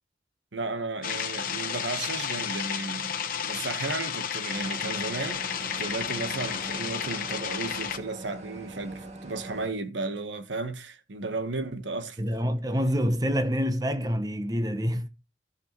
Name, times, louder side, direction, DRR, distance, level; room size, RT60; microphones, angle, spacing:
voice 1, 0.5-3.1 3.5-12.2, right 3 dB, 85° right, 1.1 m, -34 dB
sound 1, 1.0-8.0, left 8 dB, 50° left, 1.0 m, -32 dB
sound 2, 4.5-9.7, right 2 dB, 40° right, 1.9 m, -42 dB
voice 2, 12.2-15.1, equal, 20° right, 0.8 m, -27 dB
15.0 x 6.4 x 3.0 m
head